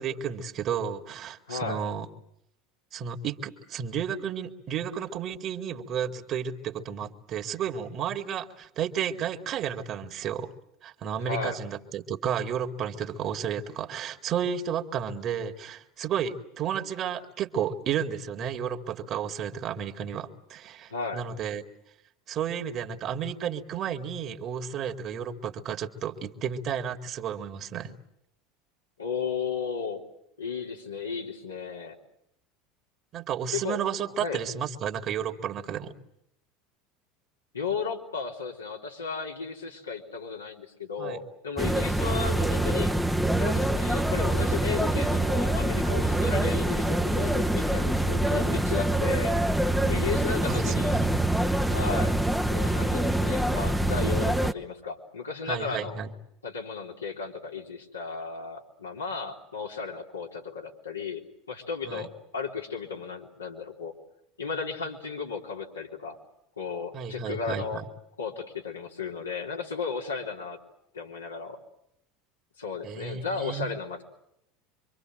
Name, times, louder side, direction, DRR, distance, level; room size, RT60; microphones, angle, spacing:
voice 1, 0.0-2.1 2.9-10.5 10.8-21.6 22.3-27.9 33.1-35.9 41.0-41.2 46.2-46.3 50.5-51.2 55.5-56.1 61.9-62.1 66.9-67.8 72.8-73.7, right 8 dB, 45° right, 5 dB, 2.1 m, -32 dB
voice 2, 1.5-1.8 11.2-11.6 20.9-21.2 29.0-30.0 30.4-32.0 33.5-33.8 34.2-34.4 37.5-42.9 43.4-49.4 49.9-51.0 51.7-52.2 52.5-56.0 56.4-61.2 61.5-63.9 64.4-66.2 66.6-67.8 68.2-70.6 70.9-71.6 72.6-74.0, left 5 dB, 85° left, -2 dB, 3.6 m, -34 dB
sound 1, 41.6-54.5, right 1 dB, ahead, 1.1 m, -25 dB
26.0 x 24.5 x 7.8 m, 0.76 s
figure-of-eight pair, 75°, 0 cm